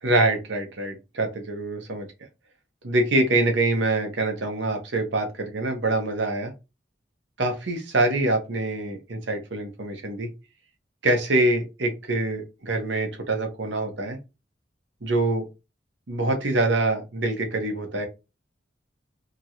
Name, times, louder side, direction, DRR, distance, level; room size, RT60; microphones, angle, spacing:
voice 1, 0.0-2.1 2.8-6.5 7.4-10.3 11.0-14.2 15.0-15.5 16.1-18.1, right 2 dB, 80° right, 4 dB, 0.9 m, -25 dB
2.9 x 2.5 x 2.9 m, 0.26 s
head